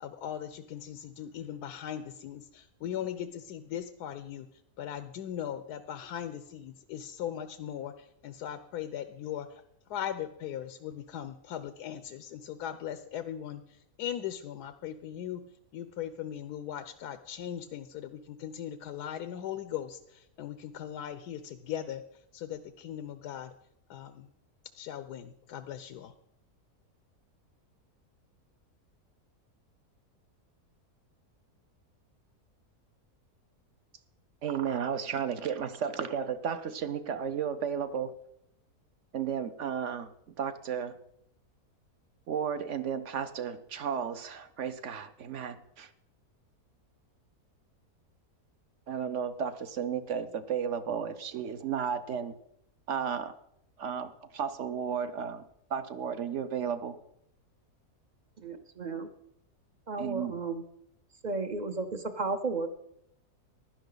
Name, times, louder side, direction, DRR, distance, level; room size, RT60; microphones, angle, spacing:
voice 1, 0.0-4.5 4.8-9.6 9.9-15.4 15.7-22.0 22.3-23.5 23.9-24.3 24.7-26.1, left 10 dB, 85° left, 11 dB, 1.2 m, -39 dB
voice 2, 34.4-38.1 39.1-40.1 40.4-41.0 42.3-45.9 48.9-52.4 52.9-53.3 53.8-55.4 55.7-57.0 60.0-60.3, right 7 dB, 60° right, 11 dB, 1.0 m, -33 dB
voice 3, 58.4-59.1 59.9-60.6 61.2-62.7, right 3 dB, 45° right, 9 dB, 0.6 m, -33 dB
15.5 x 11.5 x 3.9 m, 0.78 s
omnidirectional pair, 1.7 m